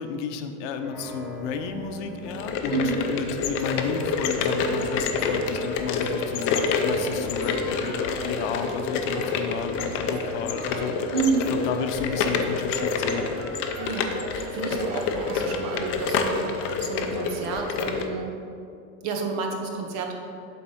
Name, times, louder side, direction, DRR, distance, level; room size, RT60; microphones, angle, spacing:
voice 1, 0.0-10.9 11.5-13.3, left 6 dB, 70° left, 7 dB, 0.7 m, -32 dB
sound 1, 0.8-12.0, right 2 dB, 5° right, 1.8 m, -41 dB
sound 2, 1.0-18.4, right 3 dB, 75° right, 0.9 m, -43 dB
sound 3, 2.2-18.1, left 5 dB, 35° left, 0.4 m, -28 dB
voice 2, 11.1-11.5 13.8-16.5 16.8-18.4 19.0-20.3, right 4 dB, 45° right, 2 dB, 1.0 m, -30 dB
7.4 x 4.0 x 5.4 m, 2.5 s
supercardioid pair, 155°, 37 cm